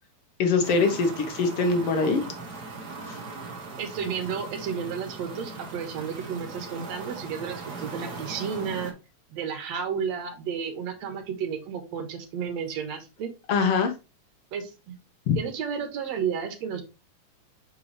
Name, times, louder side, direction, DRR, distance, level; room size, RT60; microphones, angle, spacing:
voice 1, 0.4-2.2 3.0-3.2 13.5-13.9 15.3-15.4, left 4 dB, 60° left, 1.9 m, -23 dB
sound 1, 0.6-8.9, right 3 dB, 45° right, 1.4 m, -39 dB
voice 2, 3.8-8.9 9.3-13.3 14.5-14.9 15.3-16.8, right 7 dB, 65° right, 2.4 m, -32 dB
7.1 x 4.6 x 3.3 m
omnidirectional pair, 3.4 m